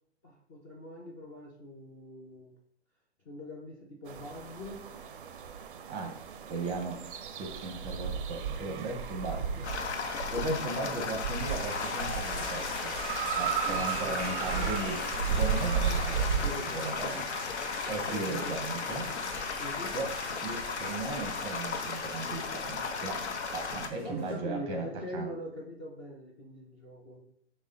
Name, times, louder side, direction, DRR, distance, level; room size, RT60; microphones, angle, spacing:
voice 1, 0.2-2.5 3.3-4.8 13.7-14.7 16.4-16.9 18.1-18.6 19.6-19.9 24.0-27.2, left 1 dB, 20° left, -3 dB, 0.4 m, -42 dB
sound 1, 4.1-16.5, right 7 dB, 50° right, 0.4 m, -34 dB
voice 2, 6.5-6.9 7.3-9.6 10.0-12.9 13.4-17.3 17.6-19.1 19.9-20.1 20.4-23.2 23.5-24.9 25.1-25.3, right 3 dB, 15° right, 2 dB, 0.8 m, -37 dB
sound 2, 9.6-23.9, left 5 dB, 70° left, 0.7 m, -36 dB
sound 3, 11.2-24.4, left 2 dB, 45° left, 1.1 m, -42 dB
6.2 x 2.1 x 3.7 m, 0.69 s
figure-of-eight pair, 125°, 35 cm